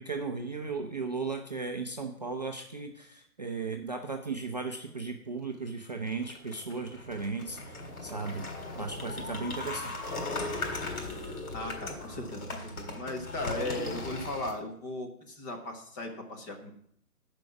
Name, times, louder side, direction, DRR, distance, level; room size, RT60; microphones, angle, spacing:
voice 1, 0.0-8.5 8.7-10.2, right 4 dB, 30° right, 3 dB, 0.4 m, -36 dB
sound 1, 5.9-14.5, left 2 dB, 65° left, 3.9 m, -38 dB
voice 2, 11.5-16.7, left 2 dB, 10° left, 2 dB, 0.7 m, -37 dB
10.5 x 5.3 x 7.1 m, 0.68 s
figure-of-eight pair, 140°, 47 cm